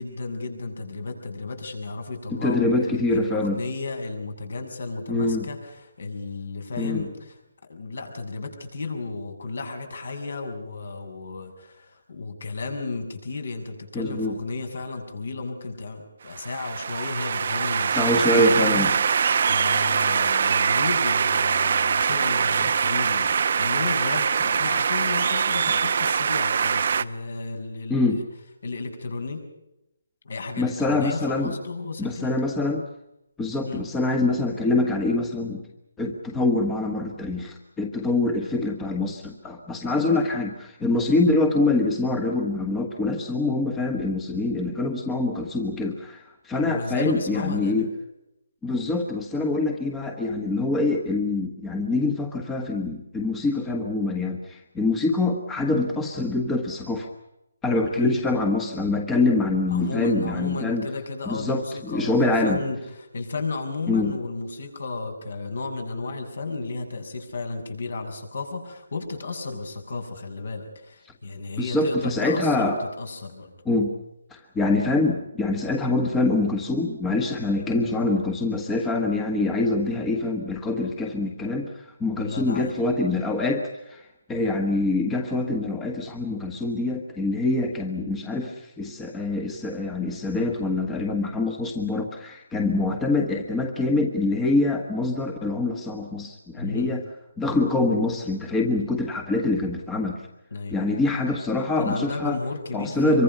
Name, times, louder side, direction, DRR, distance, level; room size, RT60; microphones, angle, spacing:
voice 1, 0.0-7.4 7.7-28.2 28.6-29.4 30.2-32.3 33.6-33.8 46.5-47.9 58.0-58.2 59.7-73.5 82.2-82.7 96.6-97.0 100.5-100.8 101.8-103.2, left 3 dB, 65° left, 5 dB, 6.8 m, -33 dB
voice 2, 2.4-3.6 5.1-5.4 6.8-7.0 13.9-14.4 17.9-18.9 27.9-28.2 30.6-31.5 32.0-32.8 33.4-35.6 36.0-47.9 48.6-57.1 57.6-60.9 61.3-62.6 63.9-64.1 69.5-69.6 71.6-72.8 73.6-73.9 74.3-97.0 97.4-100.2 100.7-102.4 102.7-103.2, left 2 dB, 10° left, 3 dB, 1.4 m, -25 dB
sound 1, 16.3-27.0, right 6 dB, 45° right, 0.8 m, -23 dB
25.5 x 24.0 x 5.6 m, 0.87 s
hypercardioid pair, 170°, 0 cm